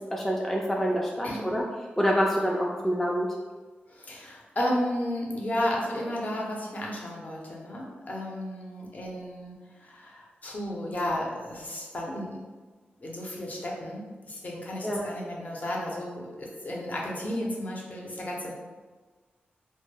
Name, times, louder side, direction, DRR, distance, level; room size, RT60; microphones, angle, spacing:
voice 1, 0.1-1.6 2.0-3.3 14.8-15.0, equal, 5° left, -2 dB, 0.3 m, -26 dB
voice 2, 1.2-1.5 3.9-12.4 13.0-18.5, left 1 dB, 45° left, -2 dB, 0.6 m, -33 dB
2.2 x 2.1 x 3.2 m, 1.3 s
cardioid pair, 70°, 4 cm